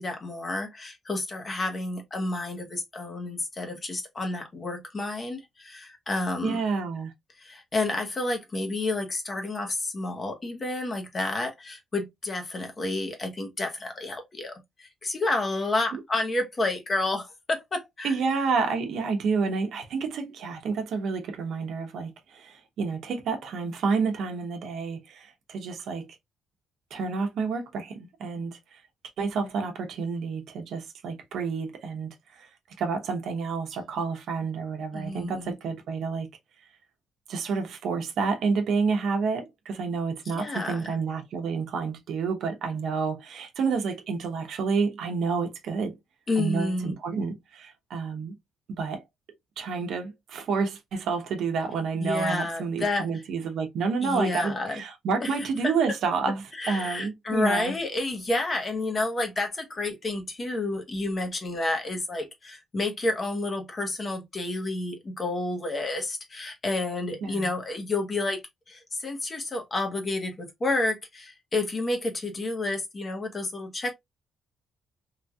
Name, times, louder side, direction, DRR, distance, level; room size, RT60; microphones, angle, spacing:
voice 1, 0.0-6.6 7.4-18.1 34.9-35.5 40.3-40.8 46.3-47.0 52.0-53.1 54.0-54.8 55.2-55.3 56.5-68.4 68.7-73.9, left 2 dB, 35° left, 1.0 m, -30 dB
voice 2, 6.4-7.1 15.9-16.0 18.0-26.1 26.9-28.8 29.2-32.5 32.8-36.3 37.3-45.9 46.4-48.3 48.7-49.0 49.6-57.7 67.2-67.5, right 5 dB, 70° right, 0.8 m, -29 dB
3.2 x 2.6 x 2.2 m
cardioid pair, 90°, 0 cm